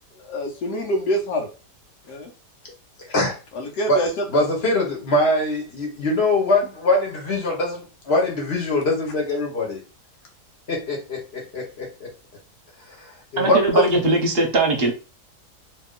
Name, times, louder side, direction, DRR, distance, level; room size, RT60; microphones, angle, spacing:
voice 1, 0.2-1.5 2.1-2.3 3.5-4.4, equal, 80° left, 1 dB, 1.4 m, -26 dB
voice 2, 3.1-3.4 3.9-4.0 4.3-9.8 10.7-12.1 13.0-13.8, left 2 dB, 40° left, 0 dB, 1.3 m, -23 dB
voice 3, 13.4-14.9, right 2 dB, 45° right, 2 dB, 0.9 m, -19 dB
2.9 x 2.9 x 3.7 m, 0.33 s
omnidirectional pair, 1.7 m